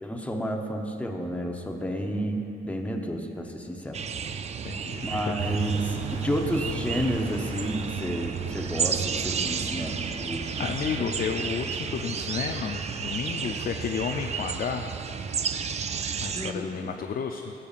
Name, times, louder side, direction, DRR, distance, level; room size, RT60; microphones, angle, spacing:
voice 1, 0.0-4.0 5.0-10.7 16.3-16.9, equal, 5° left, 2 dB, 0.9 m, -31 dB
sound 1, 3.9-16.5, right 6 dB, 35° right, 0.4 m, -32 dB
voice 2, 4.6-5.3 10.6-14.8 16.2-17.5, left 7 dB, 45° left, 4 dB, 0.5 m, -32 dB
sound 2, 5.4-11.2, right 4 dB, 70° right, 2.0 m, -37 dB
17.0 x 6.8 x 2.5 m, 2.8 s
cardioid pair, 90°, 20 cm